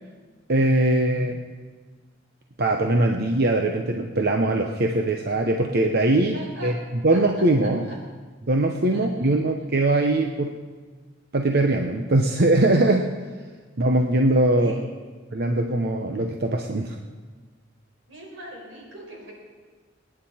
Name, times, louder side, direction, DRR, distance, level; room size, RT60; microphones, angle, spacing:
voice 1, 0.5-1.3 2.6-6.7 7.0-7.8 8.5-10.6 11.3-13.1 13.8-14.8 15.3-17.0, right 2 dB, 60° right, 3 dB, 0.9 m, -21 dB
voice 2, 6.3-6.7 7.1-7.2 7.6-8.0 8.9-9.4 12.3-12.4 14.5-14.8 18.1-19.3, equal, 85° right, -2 dB, 5.3 m, -42 dB
26.0 x 9.9 x 4.3 m, 1.4 s
head